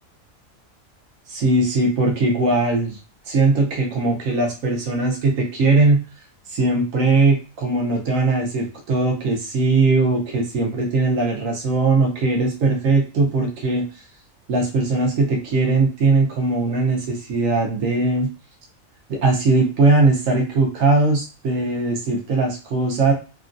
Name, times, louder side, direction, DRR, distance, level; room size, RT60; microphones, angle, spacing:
voice 1, 1.3-3.0 3.3-6.0 6.5-13.8 14.5-18.3 19.1-23.1, right 3 dB, 75° right, 0 dB, 1.2 m, -19 dB
3.0 x 2.3 x 2.5 m, 0.34 s
omnidirectional pair, 1.4 m